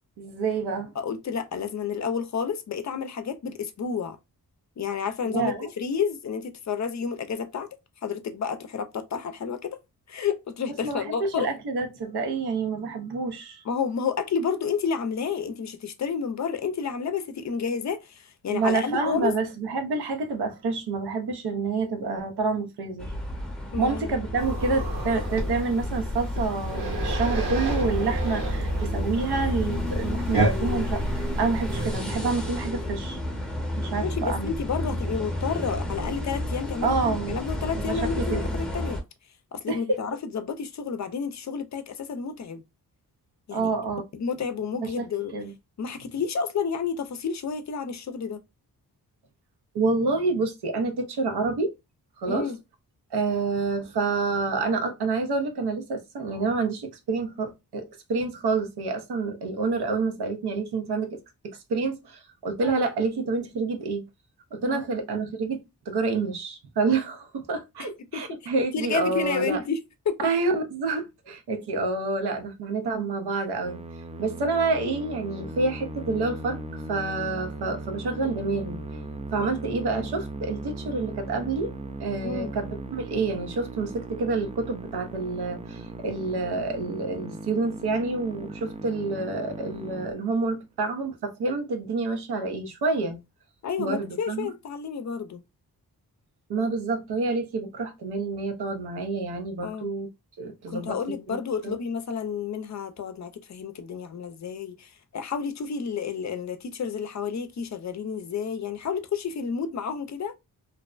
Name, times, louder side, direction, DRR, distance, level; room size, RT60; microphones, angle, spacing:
voice 1, 0.2-0.9 5.3-5.7 10.8-13.6 18.5-23.1 23.8-33.2 33.8-34.5 34.8-35.0 36.8-37.4 37.8-38.6 39.7-40.0 43.5-44.0 44.8-45.1 45.3-45.5 49.7-51.7 52.2-52.5 53.1-61.2 61.4-64.1 64.5-69.6 70.2-73.8 74.2-78.8 79.3-93.2 93.8-94.5 96.5-100.1 100.4-101.0 101.3-101.4 101.6-101.8, right 3 dB, 85° right, 0.7 m, -28 dB
voice 2, 1.0-4.2 4.8-7.7 8.0-9.8 10.1-11.5 13.7-19.3 23.7-24.1 34.0-39.0 39.5-42.6 43.5-43.7 44.1-45.3 45.8-48.4 52.3-52.6 64.7-64.9 67.8-68.2 68.7-70.2 82.2-82.5 93.6-95.4 99.6-99.9 100.7-110.3, left 6 dB, 50° left, 0.4 m, -30 dB
sound 1, 23.0-39.0, left 1 dB, ahead, 0.7 m, -31 dB
sound 2, 24.4-32.0, right 1 dB, 60° right, 0.9 m, -31 dB
Musical instrument, 73.6-90.8, right 2 dB, 20° right, 0.3 m, -38 dB
2.5 x 2.1 x 2.4 m
cardioid pair, 70°, 38 cm